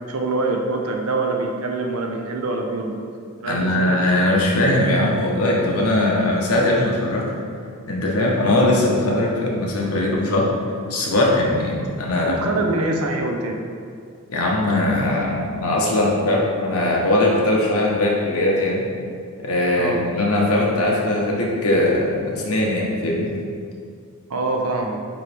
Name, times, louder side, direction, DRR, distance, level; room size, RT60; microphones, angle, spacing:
voice 1, 0.1-3.0 3.4-3.9 12.2-13.6 19.8-20.0 24.3-25.0, right 2 dB, 75° right, 2 dB, 0.7 m, -24 dB
voice 2, 3.4-7.3 7.9-10.5 10.9-12.6 14.3-18.8 19.4-23.3, left 1 dB, 75° left, -2 dB, 1.1 m, -20 dB
9.0 x 3.1 x 3.4 m, 2.2 s
head